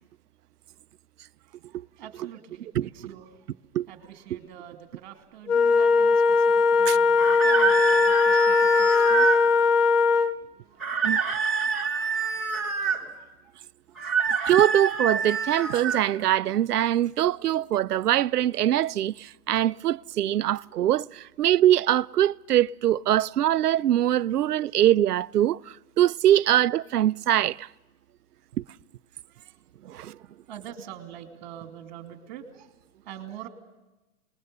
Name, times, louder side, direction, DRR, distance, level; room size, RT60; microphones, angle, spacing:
voice 1, 1.7-3.5 3.9-9.5 10.0-11.9 12.3-13.2 13.9-14.3 29.3-29.5 29.9-33.5, right 10 dB, 30° right, 2.8 m, -46 dB
Wind instrument woodwind instrument, 5.5-10.4, left 5 dB, 80° left, 1.6 m, -20 dB
sound 1, 7.2-9.4 10.8-13.0 14.0-16.0, right 6 dB, ahead, 1.9 m, -26 dB
voice 2, 14.5-25.6 26.0-27.7 29.9-30.2, right 12 dB, 80° right, 0.7 m, -23 dB
27.5 x 20.5 x 6.9 m
hypercardioid pair, 170°, 45 cm